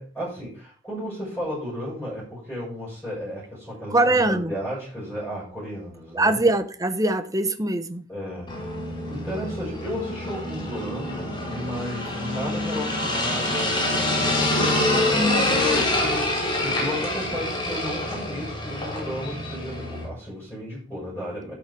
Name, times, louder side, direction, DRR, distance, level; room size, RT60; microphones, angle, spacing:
voice 1, 0.0-6.4 8.1-8.8 9.1-16.3 16.6-21.5, left 1 dB, 10° left, 7.3 m, -33 dB
voice 2, 3.9-4.5 6.1-8.1, right 2 dB, 20° right, 0.9 m, -22 dB
sound 1, 8.5-20.0, left 1 dB, 25° left, 4.2 m, -26 dB
12.0 x 7.2 x 4.9 m
head